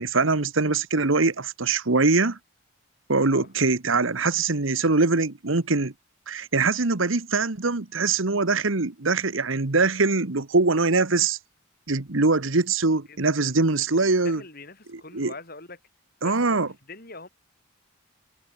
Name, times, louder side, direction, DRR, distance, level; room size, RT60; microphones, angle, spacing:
voice 1, 0.0-2.4 3.1-5.9 6.3-11.4 11.9-14.4 14.9-15.3 16.2-16.7, right 3 dB, 75° right, 1.4 m, -23 dB
voice 2, 13.1-13.6 13.9-15.8 16.2-17.3, left 3 dB, 45° left, 6.9 m, -43 dB
head